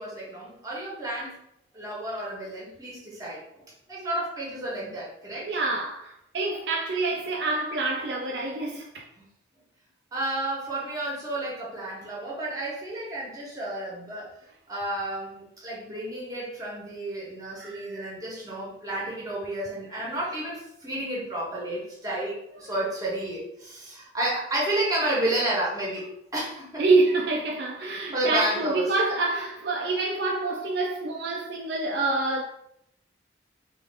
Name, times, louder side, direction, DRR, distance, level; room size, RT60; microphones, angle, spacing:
voice 1, 0.0-1.4 1.7-3.6 3.9-5.5 9.2-9.3 10.1-14.4 14.7-26.8 28.1-28.9, right 1 dB, 20° right, 1.0 m, -31 dB
voice 2, 5.4-9.0 17.6-18.1 26.8-32.4, right 3 dB, 60° right, 0.4 m, -27 dB
3.4 x 2.5 x 3.3 m
head